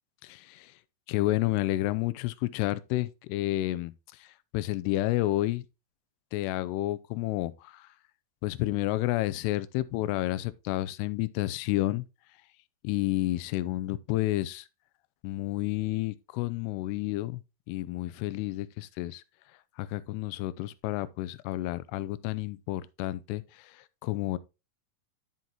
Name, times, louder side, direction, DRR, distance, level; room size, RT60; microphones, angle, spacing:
voice 1, 0.2-0.7 1.1-3.9 4.2-4.3 4.5-5.6 6.3-7.9 8.4-12.0 12.8-14.7 15.2-17.4 17.7-19.2 19.8-24.4, left 17 dB, 85° left, 2.7 m, -30 dB
11.5 x 5.5 x 2.9 m
omnidirectional pair, 4.6 m